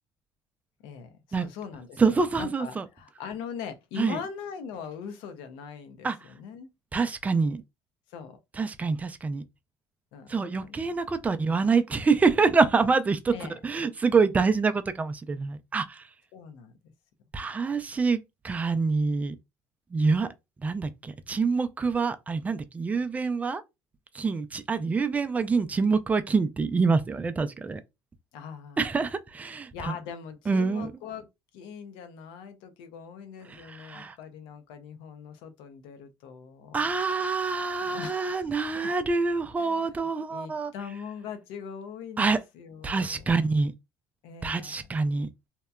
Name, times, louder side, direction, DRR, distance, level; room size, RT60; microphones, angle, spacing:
voice 1, 0.8-6.7 8.1-8.4 10.1-10.3 10.6-10.8 13.3-13.6 16.3-16.9 28.3-28.9 29.7-31.3 31.5-36.9 37.8-38.5 38.8-38.9 39.6-43.2 44.2-44.7, left 7 dB, 85° left, 0.5 m, -41 dB
voice 2, 2.0-2.9 4.0-4.2 6.0-6.3 6.9-7.6 8.6-9.4 10.3-13.3 13.6-16.1 17.3-18.2 18.4-19.4 19.9-20.3 20.6-23.6 24.1-27.8 28.8-29.9 30.5-30.9 33.5-34.2 36.7-40.7 42.2-42.4 42.8-43.7 44.4-45.3, right 4 dB, 20° right, 0.3 m, -26 dB
2.8 x 2.2 x 2.3 m
cardioid pair, 105°, 8 cm